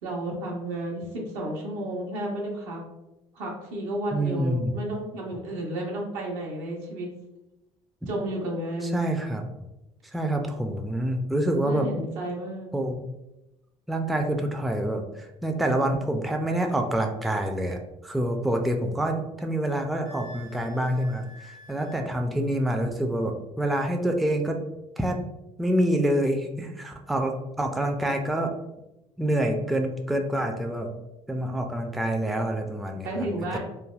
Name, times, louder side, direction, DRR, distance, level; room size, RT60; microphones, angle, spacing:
voice 1, 0.0-2.8 3.3-7.1 8.1-9.0 11.6-12.7 33.0-33.6, right 1 dB, 80° right, -2 dB, 0.9 m, -32 dB
voice 2, 4.1-4.8 8.0-8.1 8.8-9.5 10.1-11.9 12.7-13.0 13.9-24.6 25.0-25.2 25.6-28.5 29.2-30.9 31.3-33.6, right 1 dB, ahead, 3 dB, 0.3 m, -27 dB
Wind instrument woodwind instrument, 20.0-22.0, equal, 85° left, 1.4 m, -49 dB
3.2 x 2.1 x 2.3 m, 0.94 s
supercardioid pair, 75°, 15 cm